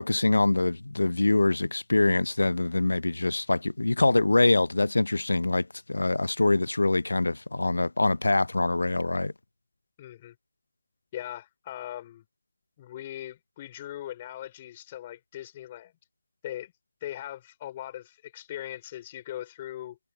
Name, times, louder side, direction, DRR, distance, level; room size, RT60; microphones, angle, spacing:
voice 1, 0.0-9.3, left 2 dB, 75° left, 0.9 m, -24 dB
voice 2, 10.0-10.4 11.1-12.2 12.8-15.9 16.4-16.7 17.0-20.0, left 12 dB, 30° left, 5.0 m, -40 dB
figure-of-eight pair, 145°, 0 cm